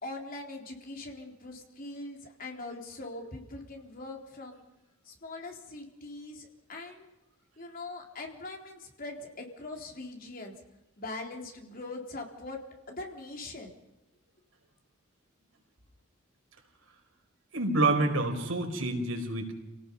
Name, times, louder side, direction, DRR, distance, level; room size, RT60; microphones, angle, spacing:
voice 1, 0.0-4.6 5.0-7.1 7.6-10.5 11.0-12.6 12.9-13.7, left 2 dB, 45° left, 1 dB, 4.0 m, -42 dB
voice 2, 17.5-19.5, right 2 dB, 85° right, 3 dB, 4.9 m, -27 dB
30.0 x 18.0 x 5.5 m, 0.97 s
head